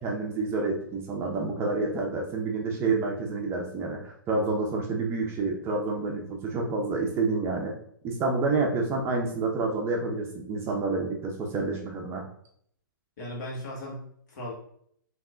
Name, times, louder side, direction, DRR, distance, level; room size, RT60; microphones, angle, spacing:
voice 1, 0.0-7.7 8.0-12.2, right 3 dB, 20° right, 0 dB, 0.6 m, -28 dB
voice 2, 13.2-14.5, left 1 dB, 55° left, -2 dB, 1.5 m, -37 dB
3.5 x 2.6 x 2.4 m, 0.65 s
hypercardioid pair, 125°, 11 cm